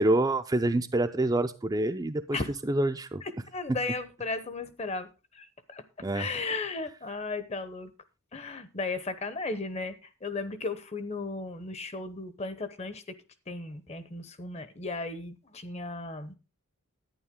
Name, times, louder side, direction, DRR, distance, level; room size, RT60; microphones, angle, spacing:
voice 1, 0.0-2.4 2.6-3.2 6.0-6.3, right 1 dB, 15° right, 7 dB, 0.4 m, -26 dB
voice 2, 3.2-5.1 5.3-5.8 6.1-7.9 8.3-9.9 10.2-13.0 13.5-16.4, left 3 dB, 30° left, 13 dB, 0.8 m, -35 dB
11.0 x 9.6 x 3.7 m, 0.31 s
head